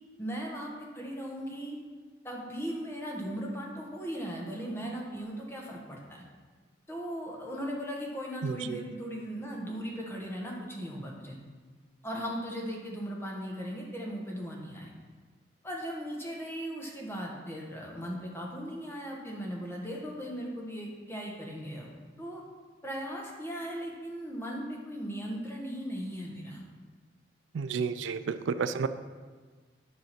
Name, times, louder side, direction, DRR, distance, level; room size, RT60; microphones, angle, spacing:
voice 1, 0.2-1.8 2.2-6.0 6.9-11.4 12.0-14.9 15.6-21.9 22.2-22.4 22.8-26.6, equal, 15° left, -2 dB, 1.3 m, -38 dB
voice 2, 8.4-8.8 27.5-28.9, right 5 dB, 90° right, 12 dB, 0.4 m, -31 dB
11.0 x 3.9 x 5.9 m, 1.4 s
head